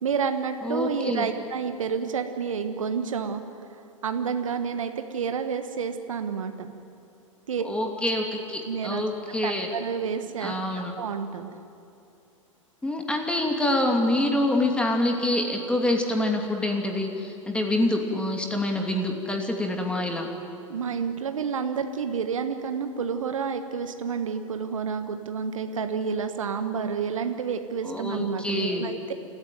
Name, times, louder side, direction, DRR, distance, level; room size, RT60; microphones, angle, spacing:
voice 1, 0.0-3.4 4.0-6.7 7.5-7.6 8.6-9.0 9.4-11.5 20.7-29.0, right 6 dB, 70° right, 8 dB, 1.4 m, -29 dB
voice 2, 0.6-1.3 7.6-9.7 10.4-10.9 12.8-20.3 27.8-28.9, left 1 dB, 5° left, 2 dB, 2.8 m, -26 dB
28.5 x 15.0 x 9.4 m, 2.6 s
figure-of-eight pair, 105°, 17 cm